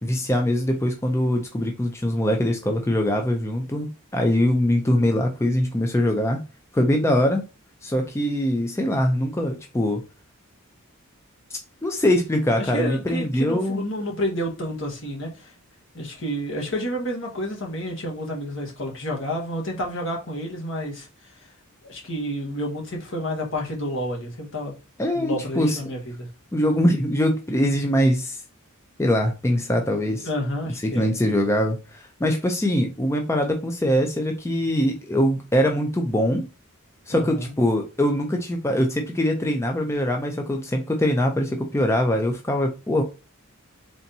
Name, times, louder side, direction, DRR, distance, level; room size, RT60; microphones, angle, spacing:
voice 1, 0.0-6.4 6.7-7.4 7.8-10.0 11.8-13.8 25.0-25.8 26.5-28.4 29.0-30.3 30.8-36.5 37.1-43.0, left 1 dB, 15° left, 0.4 m, -22 dB
voice 2, 12.6-15.5 15.9-21.1 21.8-24.7 25.1-26.3 30.2-31.1 37.1-37.5, equal, 65° left, 1.4 m, -30 dB
4.1 x 3.4 x 2.6 m
head